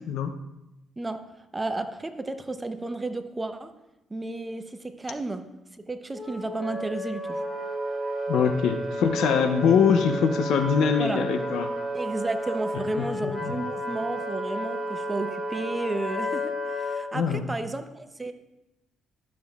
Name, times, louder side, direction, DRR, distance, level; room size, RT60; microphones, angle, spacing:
voice 1, 1.5-3.7 4.1-5.5 5.8-7.4 11.0-11.2 11.9-18.3, right 2 dB, 20° right, 9 dB, 0.6 m, -32 dB
Wind instrument woodwind instrument, 6.1-17.0, equal, 20° left, 1.9 m, -31 dB
voice 2, 8.3-11.7 13.0-13.6 17.1-17.4, left 7 dB, 75° left, 9 dB, 0.6 m, -23 dB
12.0 x 7.2 x 2.3 m, 0.93 s
cardioid pair, 80°, 0 cm